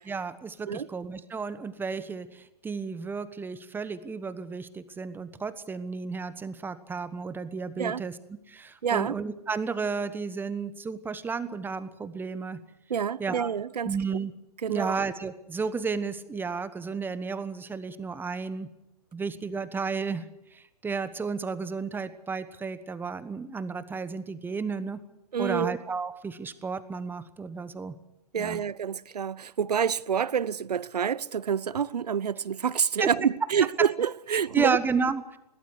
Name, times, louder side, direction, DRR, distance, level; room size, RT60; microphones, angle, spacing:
voice 1, 0.0-8.2 8.5-12.6 13.2-13.5 13.8-14.3 14.7-18.7 19.1-20.2 20.5-25.0 25.4-28.0 28.4-28.6 33.0-33.1 34.5-35.4, right 5 dB, 10° right, 1.2 m, -32 dB
voice 2, 8.8-9.1 12.9-13.9 14.6-15.0 25.3-25.7 28.3-34.8, right 7 dB, 90° right, 0.7 m, -27 dB
21.5 x 17.0 x 8.2 m
hypercardioid pair, 130°, 20 cm